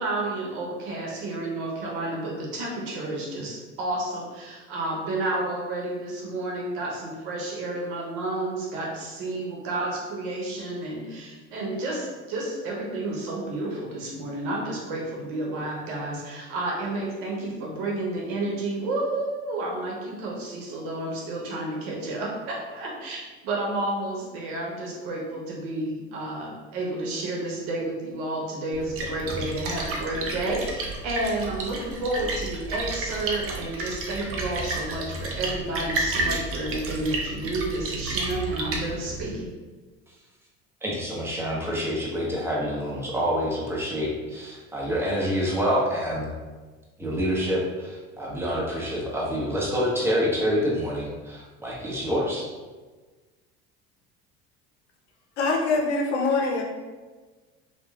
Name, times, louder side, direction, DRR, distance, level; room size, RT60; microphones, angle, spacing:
voice 1, 0.0-39.5, right 2 dB, 70° right, -2 dB, 0.9 m, -31 dB
Splash splatter, 28.7-39.3, right 2 dB, 40° right, 0.6 m, -31 dB
voice 2, 40.8-46.3 47.0-52.4, equal, 5° right, -5 dB, 0.8 m, -27 dB
voice 3, 55.4-56.6, left 3 dB, 90° left, 0 dB, 0.6 m, -24 dB
2.9 x 2.2 x 2.4 m, 1.3 s
supercardioid pair, 85°, 34 cm